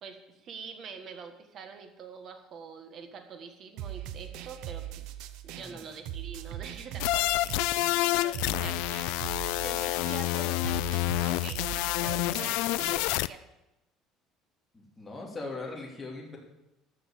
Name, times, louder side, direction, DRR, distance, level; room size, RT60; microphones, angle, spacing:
voice 1, 0.0-5.1 5.4-7.4 8.0-8.8 9.6-11.7 12.0-13.4, right 5 dB, 40° right, 6 dB, 1.6 m, -45 dB
sound 1, 3.8-12.9, right 12 dB, 70° right, 0.8 m, -40 dB
sound 2, 7.0-13.3, left 19 dB, 80° left, 0.4 m, -28 dB
voice 2, 14.7-16.4, left 3 dB, 10° left, -3 dB, 2.8 m, -40 dB
13.0 x 6.1 x 8.6 m, 0.91 s
cardioid pair, 170°, 0 cm